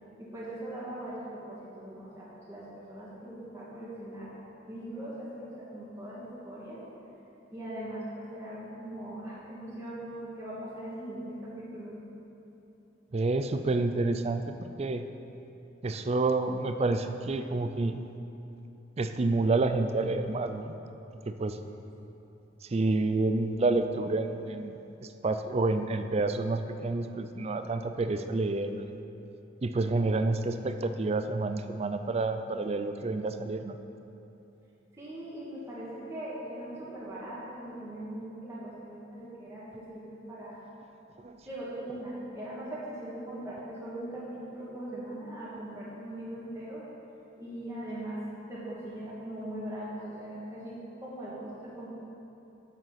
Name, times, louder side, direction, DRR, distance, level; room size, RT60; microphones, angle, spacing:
voice 1, 0.2-4.3 4.7-6.8 7.5-12.0 34.9-40.6 41.4-46.8 47.4-51.9, right 1 dB, 15° right, -9 dB, 1.7 m, -40 dB
voice 2, 13.1-15.0 15.8-18.1 19.0-20.7 21.3-21.6 22.6-28.9 29.6-33.8 41.2-41.4, right 3 dB, 35° right, 8 dB, 0.4 m, -29 dB
7.7 x 7.4 x 5.8 m, 3.0 s
head